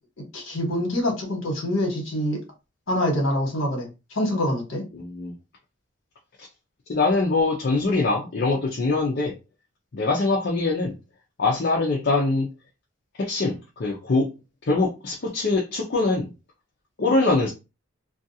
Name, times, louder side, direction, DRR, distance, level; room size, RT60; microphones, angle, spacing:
voice 1, 0.3-2.4 2.9-4.8, left 1 dB, 65° left, 1 dB, 1.2 m, -25 dB
voice 2, 4.9-5.3 6.9-9.3 9.9-10.9 11.4-12.5 13.2-14.3 14.7-16.3 17.0-17.5, left 3 dB, 50° left, -2 dB, 0.5 m, -23 dB
2.4 x 2.3 x 2.7 m, 0.27 s
head